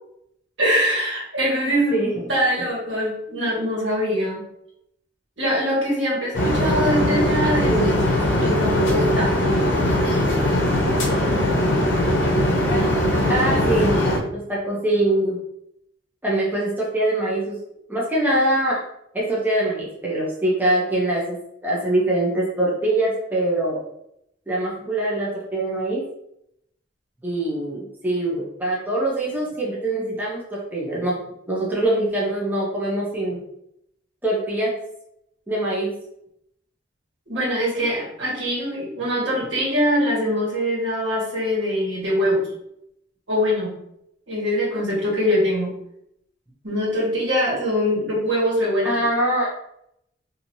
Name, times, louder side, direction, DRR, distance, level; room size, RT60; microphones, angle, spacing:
voice 1, 0.6-4.4 5.4-7.9 8.1-9.5 37.3-42.5 43.3-43.8 44.3-45.7 46.6-49.0, equal, 70° right, -5 dB, 1.4 m, -23 dB
sound 1, 6.3-14.2, left 1 dB, 70° left, 0.7 m, -20 dB
voice 2, 13.3-14.0 14.3-15.4 16.2-17.6 17.9-18.8 19.1-23.8 24.5-26.0 27.2-31.2 31.5-33.4 34.2-34.7 35.5-35.9 48.8-49.5, right 1 dB, 10° right, -6 dB, 0.6 m, -23 dB
3.0 x 2.7 x 2.6 m, 0.77 s
head